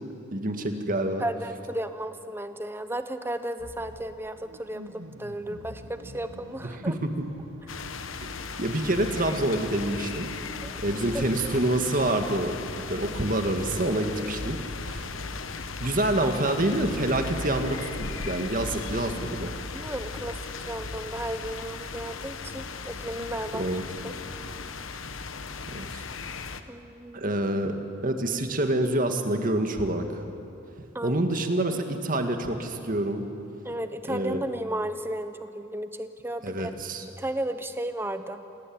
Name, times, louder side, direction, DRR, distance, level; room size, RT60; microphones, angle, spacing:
voice 1, 0.3-1.2 6.9-7.1 8.6-10.3 10.8-12.6 12.9-14.6 14.9-15.1 15.8-19.5 23.5-23.8 25.7-26.0 27.1-30.1 31.0-33.3 34.1-34.4 36.4-37.0, right 1 dB, 45° right, 5 dB, 2.1 m, -27 dB
voice 2, 1.2-7.0 10.6-10.8 11.1-11.6 19.7-23.6 24.0-24.1 26.7-27.3 30.9-31.2 33.6-36.7 37.2-38.4, right 1 dB, 10° right, 9 dB, 1.1 m, -34 dB
sound 1, 3.6-10.7, equal, 75° right, 2.3 m, -48 dB
sound 2, 7.7-26.6, left 4 dB, 80° left, 1.2 m, -37 dB
28.0 x 18.0 x 8.8 m, 2.8 s
head